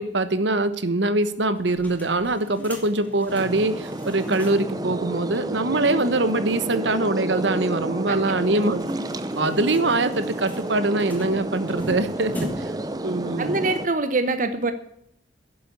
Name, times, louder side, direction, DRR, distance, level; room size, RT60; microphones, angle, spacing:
voice 1, 0.0-8.8 9.4-12.7 13.0-13.6, right 2 dB, 75° right, 13 dB, 1.2 m, -23 dB
sound 1, 1.6-4.8 5.1-5.2 5.5-5.6 8.3-12.9, equal, 10° left, 2.6 m, -39 dB
sound 2, 3.3-13.9, right 1 dB, 20° right, 0.7 m, -31 dB
voice 2, 8.1-8.6 13.4-14.7, right 3 dB, 45° right, 10 dB, 0.8 m, -25 dB
11.5 x 8.5 x 8.3 m, 0.73 s
head